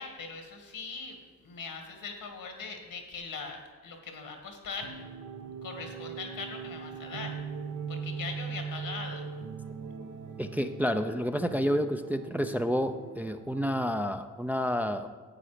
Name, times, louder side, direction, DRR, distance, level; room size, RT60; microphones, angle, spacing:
voice 1, 0.0-4.9 5.6-7.4 7.9-9.2, left 4 dB, 75° left, 4 dB, 2.1 m, -41 dB
sound 1, 4.8-14.0, right 6 dB, 70° right, 1.1 m, -41 dB
voice 2, 10.4-15.1, equal, 5° right, 7 dB, 0.5 m, -29 dB
9.9 x 8.3 x 5.1 m, 1.5 s
cardioid pair, 80°, 34 cm